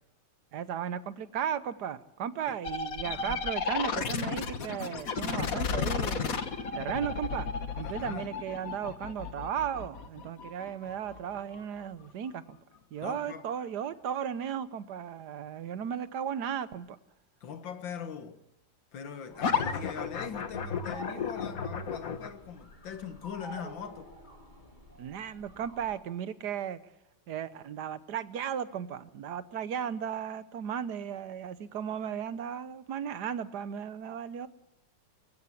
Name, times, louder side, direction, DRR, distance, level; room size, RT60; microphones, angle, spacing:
voice 1, 0.5-6.4 6.7-7.5 7.7-12.6 12.9-17.0 25.0-26.8 27.3-34.5, right 8 dB, 65° right, 1.4 m, -35 dB
sound 1, 2.6-12.1 19.4-22.3, left 5 dB, 50° left, 1.7 m, -33 dB
voice 2, 3.0-3.4 7.8-8.3 13.0-13.4 17.4-18.4 18.9-24.1, left 7 dB, 85° left, 2.2 m, -41 dB
sound 2, 19.3-26.0, right 1 dB, 25° left, 3.4 m, -49 dB
23.5 x 15.5 x 8.4 m
omnidirectional pair, 2.0 m